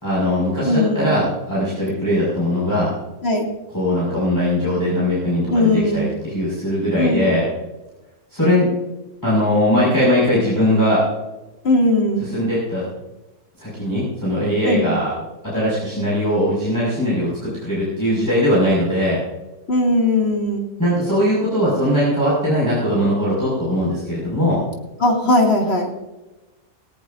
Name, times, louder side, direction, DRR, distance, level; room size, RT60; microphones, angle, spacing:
voice 1, 0.0-2.9 3.7-7.4 8.3-8.7 9.2-11.0 12.2-12.8 13.6-15.1 15.5-19.2 20.8-24.6, left 1 dB, 10° left, -9 dB, 6.1 m, -20 dB
voice 2, 0.6-1.1 3.2-3.5 5.5-6.1 7.0-7.2 11.6-12.3 14.6-14.9 19.7-20.6 25.0-25.9, left 1 dB, 45° left, 0 dB, 2.8 m, -18 dB
18.5 x 17.5 x 2.7 m, 1.1 s
omnidirectional pair, 1.6 m